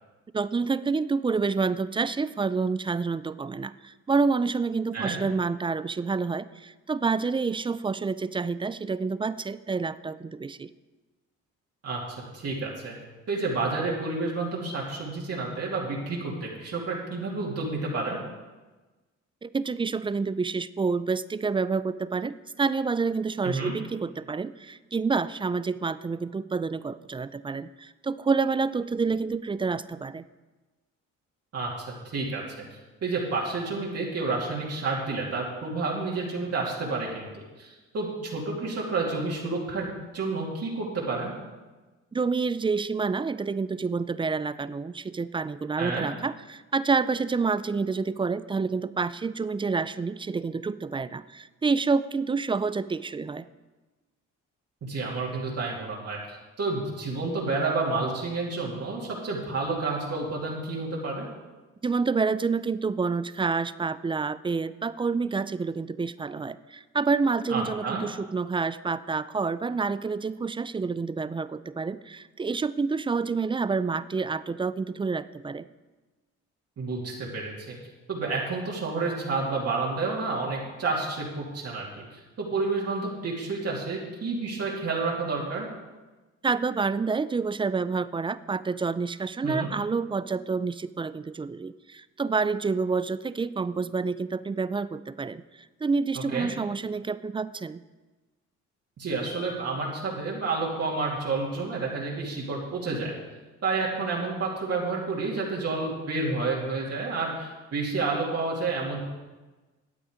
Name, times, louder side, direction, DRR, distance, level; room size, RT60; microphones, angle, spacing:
voice 1, 0.3-10.7 19.4-30.3 42.1-53.5 61.8-75.7 86.4-95.4 95.8-97.8, right 4 dB, 15° right, 16 dB, 0.4 m, -28 dB
voice 2, 12.3-12.9 13.3-18.2 23.4-23.7 31.5-32.6 33.0-37.3 37.6-39.9 40.1-41.3 45.8-46.1 54.8-61.3 67.5-68.0 76.8-77.8 78.1-81.9 82.1-85.7 89.4-89.7 96.3-96.5 99.0-103.1 103.6-109.0, right 3 dB, 55° right, -4 dB, 2.7 m, -30 dB
12.0 x 8.6 x 5.1 m, 1.2 s
cardioid pair, 90°, 30 cm